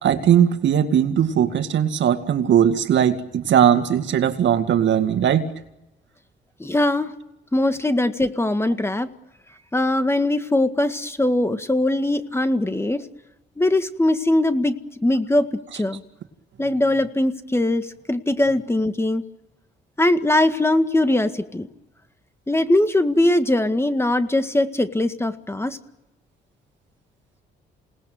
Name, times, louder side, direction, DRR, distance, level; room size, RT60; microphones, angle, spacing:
voice 1, 0.0-5.5, right 9 dB, 65° right, 8 dB, 2.1 m, -19 dB
voice 2, 6.6-7.1 7.5-9.1 9.7-13.1 13.6-14.8 15.0-15.5 15.7-16.0 16.6-19.2 20.0-21.7 22.5-25.8, left 1 dB, 10° left, 9 dB, 1.8 m, -21 dB
28.0 x 19.0 x 9.4 m, 0.95 s
cardioid pair, 90°, 20 cm